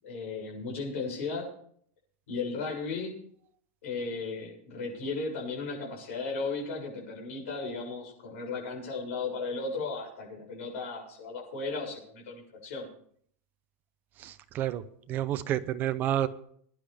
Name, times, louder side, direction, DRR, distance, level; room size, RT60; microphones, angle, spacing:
voice 1, 0.0-1.5 2.3-3.1 3.8-12.9, left 4 dB, 65° left, -1 dB, 7.1 m, -35 dB
voice 2, 14.2-16.3, right 12 dB, 25° right, 10 dB, 0.7 m, -30 dB
22.0 x 10.0 x 3.5 m, 0.62 s
supercardioid pair, 175°, 8 cm